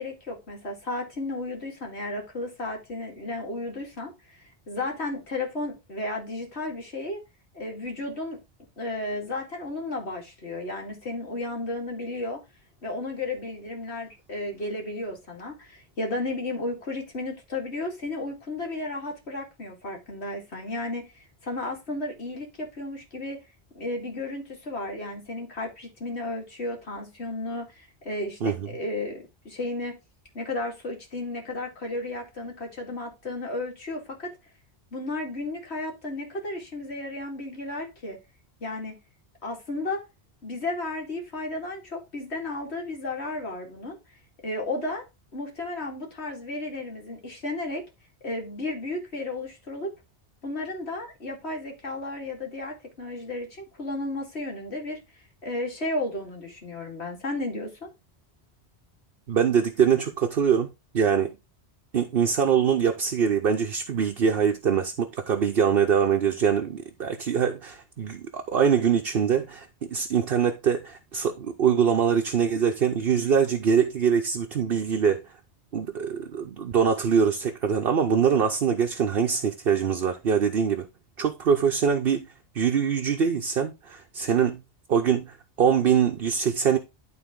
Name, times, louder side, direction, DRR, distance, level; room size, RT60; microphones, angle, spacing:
voice 1, 0.0-4.4 4.7-7.2 7.5-8.4 8.8-12.4 12.8-21.1 21.4-23.4 23.7-30.0 30.3-34.3 34.9-38.2 38.6-39.0 39.4-40.0 40.4-44.0 44.4-45.0 45.3-47.8 48.2-49.9 50.4-55.0 55.4-57.9, left 2 dB, 75° left, 2.6 m, -33 dB
voice 2, 59.3-60.7 60.9-61.3 61.9-75.3 75.7-80.9 81.2-82.3 82.5-84.6 84.9-86.8, right 7 dB, 60° right, 1.0 m, -23 dB
11.5 x 4.0 x 3.7 m
omnidirectional pair, 1.1 m